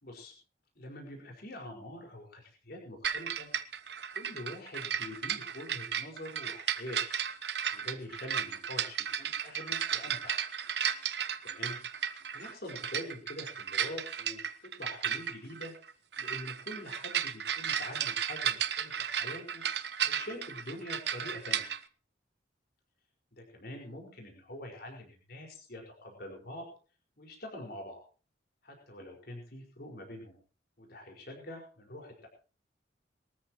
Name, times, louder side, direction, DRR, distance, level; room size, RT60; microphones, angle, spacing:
voice 1, 0.0-0.3 0.7-3.5 4.1-7.0 7.7-10.4 11.4-11.8 12.3-15.7 16.2-19.6 20.0-21.7 23.3-26.7 27.2-28.0 28.6-30.4 30.8-32.3, left 1 dB, 55° left, 1 dB, 5.1 m, -45 dB
sound 1, 3.0-21.8, right 8 dB, 65° right, 1.1 m, -34 dB
22.0 x 14.0 x 3.1 m, 0.38 s
head